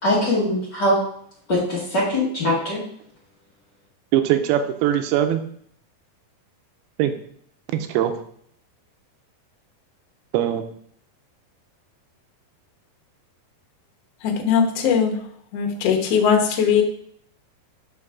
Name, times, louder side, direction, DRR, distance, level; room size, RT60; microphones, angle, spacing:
voice 1, 0.0-1.0 1.5-2.8, left 1 dB, 45° left, -7 dB, 1.3 m, -21 dB
voice 2, 4.1-5.4 7.0-7.1 7.7-8.1 10.3-10.7, right 11 dB, 90° right, 8 dB, 2.6 m, -21 dB
voice 3, 14.2-15.2 15.5-16.8, left 7 dB, 90° left, 2 dB, 1.3 m, -19 dB
6.6 x 6.0 x 3.6 m, 0.64 s
omnidirectional pair, 4.5 m